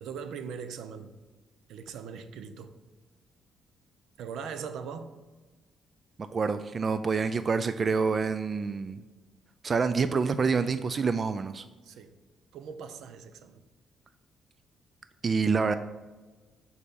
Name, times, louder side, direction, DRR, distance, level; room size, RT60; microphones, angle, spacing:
voice 1, 0.0-1.1 1.7-2.7 4.2-5.1 11.8-12.1 12.5-13.6, right 6 dB, 80° right, 10 dB, 0.6 m, -40 dB
voice 2, 6.3-9.0 9.6-11.6 15.2-15.7, right 5 dB, 40° right, 11 dB, 0.3 m, -27 dB
6.6 x 4.2 x 5.2 m, 1.3 s
cardioid pair, 95°, 0 cm